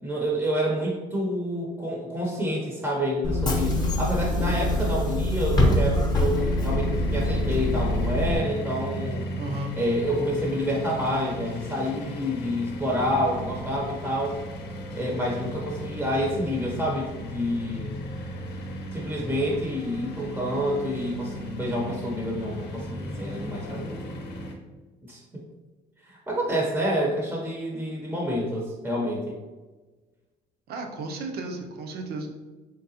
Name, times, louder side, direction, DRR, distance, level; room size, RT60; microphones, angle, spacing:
voice 1, 0.0-9.3 9.7-14.4 14.9-17.9 18.9-23.9 25.1-25.2 26.0-29.3, equal, 10° right, -2 dB, 0.7 m, -28 dB
Bus / Engine, 3.2-8.4, left 1 dB, 25° left, 0.9 m, -24 dB
sound 1, 6.3-24.5, equal, 75° left, 0.7 m, -35 dB
voice 2, 9.4-9.8 30.7-32.3, right 2 dB, 70° right, 3 dB, 0.7 m, -33 dB
3.8 x 3.2 x 2.8 m, 1.3 s
cardioid pair, 110°, 17 cm